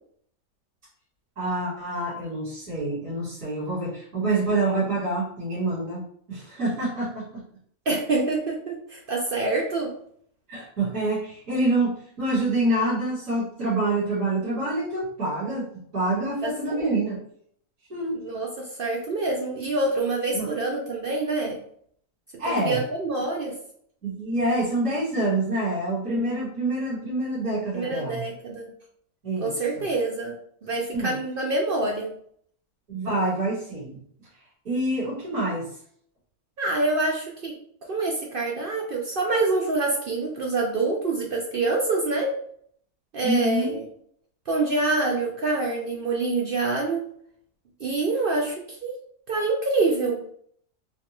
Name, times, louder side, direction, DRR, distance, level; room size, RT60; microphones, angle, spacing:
voice 1, 1.4-6.0 6.3-7.4 10.5-15.7 15.9-17.2 17.9-18.2 20.3-20.5 22.4-22.8 24.0-28.3 29.2-29.9 30.9-31.1 32.9-34.0 34.6-35.7 43.2-43.7, right 2 dB, 55° right, -9 dB, 2.1 m, -26 dB
voice 2, 7.9-9.9 16.4-17.0 18.2-21.6 22.6-23.6 27.7-28.7 29.4-32.1 36.6-37.5 37.9-42.3 43.1-43.9 44.5-47.0 47.8-48.9 49.3-50.2, right 3 dB, 75° right, -1 dB, 0.5 m, -26 dB
4.4 x 2.3 x 2.9 m, 0.64 s
omnidirectional pair, 1.6 m